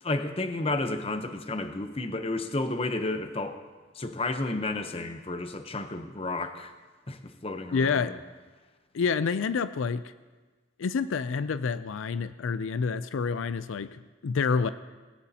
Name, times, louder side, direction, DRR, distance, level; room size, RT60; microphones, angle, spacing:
voice 1, 0.0-3.6 3.9-6.7 7.1-8.2, left 2 dB, 30° left, 8 dB, 0.8 m, -32 dB
voice 2, 7.7-8.2 8.9-10.0 10.8-14.7, left 5 dB, 80° left, 13 dB, 0.4 m, -28 dB
18.5 x 17.0 x 2.8 m, 1.3 s
head